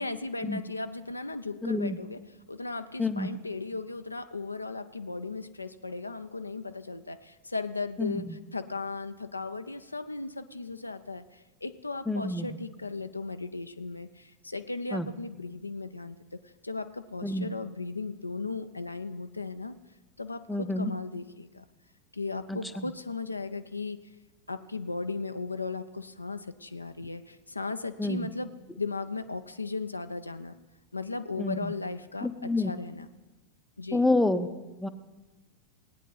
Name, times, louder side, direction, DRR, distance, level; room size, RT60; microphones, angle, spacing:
voice 1, 0.0-19.8 20.2-21.6 22.1-24.0 24.5-28.5 28.8-30.6 30.9-33.1 33.8-34.1, left 3 dB, 80° left, 9 dB, 0.4 m, -36 dB
voice 2, 1.6-2.0 3.0-3.3 8.0-8.4 12.1-12.6 14.9-15.1 17.2-17.5 20.5-20.9 22.5-22.8 28.0-28.3 31.4-31.7 32.2-32.7 33.9-34.5 34.8-34.9, left 2 dB, 5° left, 10 dB, 0.6 m, -28 dB
18.0 x 9.0 x 4.0 m, 1.2 s
figure-of-eight pair, 90°, 0 cm